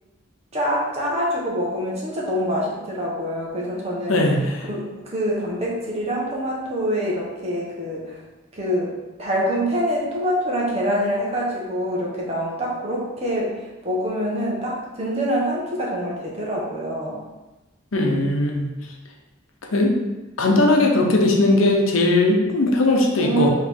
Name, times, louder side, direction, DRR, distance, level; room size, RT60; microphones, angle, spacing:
voice 1, 0.5-4.2 4.7-8.2 8.5-8.9 9.2-17.2 23.2-23.5, equal, 30° right, -4 dB, 1.1 m, -25 dB
voice 2, 4.1-4.6 17.9-18.7 19.7-19.9 20.4-23.5, left 2 dB, 90° left, 1 dB, 0.8 m, -18 dB
4.6 x 3.1 x 3.6 m, 1.1 s
head